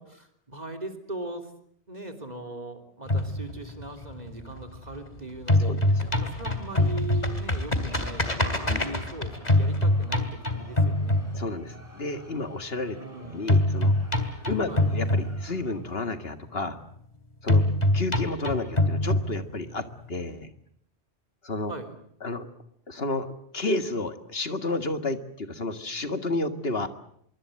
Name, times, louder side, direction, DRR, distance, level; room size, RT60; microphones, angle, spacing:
voice 1, 0.0-1.5 1.9-11.3 13.0-13.5 14.7-14.9 21.7-22.0, right 2 dB, 40° right, 6 dB, 3.5 m, -40 dB
sound 1, 3.1-5.1 5.4-11.8 13.5-15.8 17.5-19.8, left 1 dB, 40° left, 3.0 m, -24 dB
Crowd, 7.6-16.1, right 1 dB, 15° left, 7.0 m, -52 dB
voice 2, 11.3-13.9 14.5-16.8 17.4-17.6 17.9-20.5 21.4-21.7 22.2-22.5 22.9-26.9, left 2 dB, 60° left, 9 dB, 2.2 m, -31 dB
25.5 x 23.5 x 7.7 m, 0.68 s
omnidirectional pair, 1.1 m